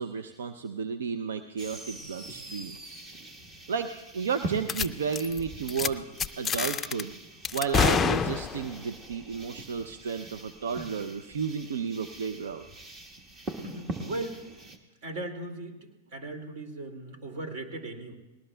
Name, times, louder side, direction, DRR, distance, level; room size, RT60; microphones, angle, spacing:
voice 1, 0.0-2.7 3.7-6.1 6.4-7.1 7.5-12.7, right 6 dB, 80° right, 9 dB, 0.5 m, -32 dB
sound 1, 1.6-14.8, right 2 dB, 30° right, 1.4 m, -43 dB
sound 2, 4.7-4.9 5.1-5.4 5.7-5.9 6.2-7.0 7.4-8.8, left 6 dB, 20° left, 0.4 m, -27 dB
voice 2, 13.6-14.4 15.0-15.8 16.1-18.1, right 2 dB, 60° right, 5 dB, 2.2 m, -37 dB
20.0 x 18.5 x 2.2 m, 1.0 s
hypercardioid pair, 120°, 0 cm